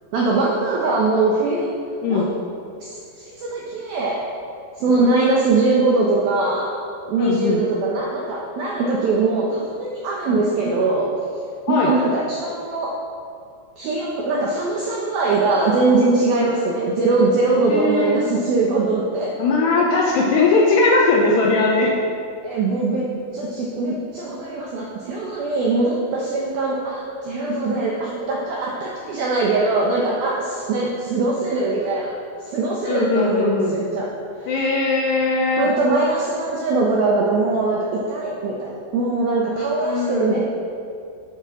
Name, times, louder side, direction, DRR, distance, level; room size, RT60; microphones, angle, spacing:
voice 1, 0.1-1.7 2.1-2.3 2.8-4.2 4.8-6.7 7.1-11.1 11.7-12.9 13.8-19.3 22.4-23.1 23.3-32.1 32.4-34.1 34.4-34.5 35.6-40.4, right 3 dB, 80° right, -3 dB, 2.1 m, -21 dB
voice 2, 7.2-7.6 10.3-10.4 11.7-11.9 16.4-16.5 17.7-18.2 19.4-21.9 27.6-27.8 32.9-33.8 34.5-35.7 39.8-40.4, left 3 dB, 75° left, -2 dB, 2.5 m, -19 dB
9.0 x 8.9 x 6.4 m, 2.4 s
omnidirectional pair, 5.9 m